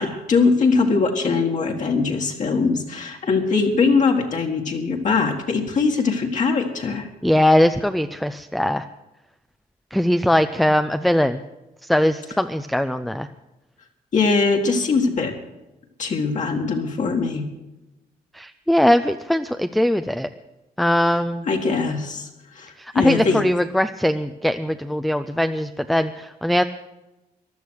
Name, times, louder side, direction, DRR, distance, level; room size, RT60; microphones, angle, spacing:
voice 1, 0.0-7.1 14.1-15.3 16.0-17.4 21.5-23.4, left 4 dB, 50° left, 1 dB, 1.8 m, -21 dB
voice 2, 7.2-8.8 9.9-11.4 11.8-13.3 18.3-20.3 20.8-21.5 22.8-26.6, left 1 dB, ahead, 9 dB, 0.5 m, -20 dB
15.5 x 11.0 x 6.4 m, 0.99 s
cardioid pair, 110°, 16 cm